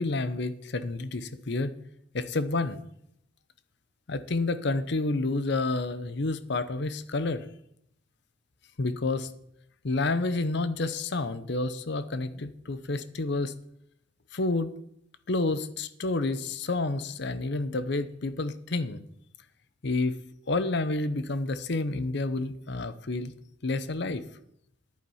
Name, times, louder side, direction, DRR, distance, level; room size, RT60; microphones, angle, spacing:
voice 1, 0.0-1.7 2.1-2.8 4.1-7.5 8.8-9.3 9.8-13.5 14.3-14.7 15.3-19.0 19.8-20.2 20.5-23.3 23.6-24.2, left 2 dB, 60° left, 13 dB, 0.8 m, -29 dB
11.0 x 8.8 x 5.6 m, 0.75 s
head